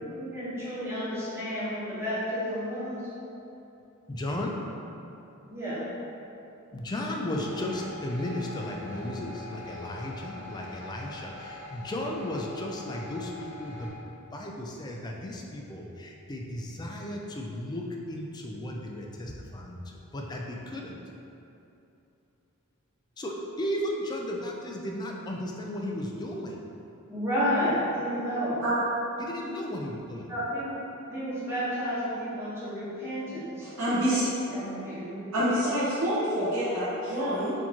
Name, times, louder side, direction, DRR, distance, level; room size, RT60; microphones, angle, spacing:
voice 1, 0.1-3.0 5.5-5.9 27.1-28.6 30.3-30.8 31.1-33.7 34.5-35.2, equal, 10° right, -11 dB, 1.1 m, -31 dB
voice 2, 4.1-4.6 6.7-13.9 14.3-21.0 23.2-26.6 29.2-30.3, left 1 dB, 20° left, 0 dB, 0.3 m, -35 dB
sound 1, 7.3-13.9, left 2 dB, 30° right, 0.7 m, -44 dB
voice 3, 33.6-34.2 35.3-37.5, equal, 85° right, -14 dB, 0.9 m, -27 dB
4.3 x 2.8 x 2.9 m, 2.8 s
head